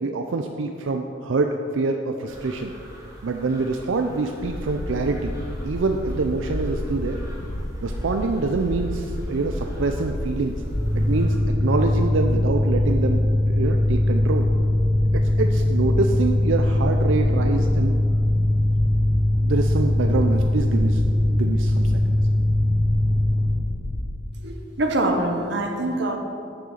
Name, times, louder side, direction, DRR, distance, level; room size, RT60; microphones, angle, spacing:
voice 1, 0.0-2.7 3.2-5.3 5.6-7.2 7.8-10.6 10.9-14.5 15.1-17.9 19.4-21.0 21.3-22.2, right 3 dB, 90° right, 4 dB, 0.5 m, -26 dB
sound 1, 2.3-11.3, equal, 15° right, 1.6 m, -45 dB
sound 2, 4.4-24.1, left 1 dB, 75° left, 0.8 m, -31 dB
Mechanical fan, 10.8-23.5, left 1 dB, 15° left, 1.0 m, -21 dB
voice 2, 24.4-26.2, right 1 dB, 65° right, 4 dB, 1.0 m, -24 dB
6.9 x 6.3 x 7.3 m, 2.6 s
head